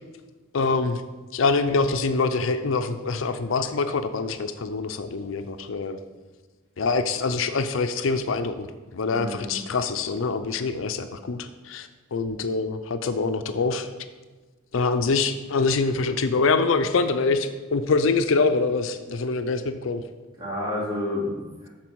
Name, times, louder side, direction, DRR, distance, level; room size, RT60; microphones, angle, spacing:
voice 1, 0.5-1.0 1.3-6.0 6.8-13.9 14.7-20.0, left 4 dB, 70° left, 9 dB, 0.5 m, -25 dB
voice 2, 9.1-9.6 20.4-21.7, left 1 dB, 25° right, -6 dB, 3.0 m, -30 dB
13.0 x 4.4 x 4.6 m, 1.3 s
head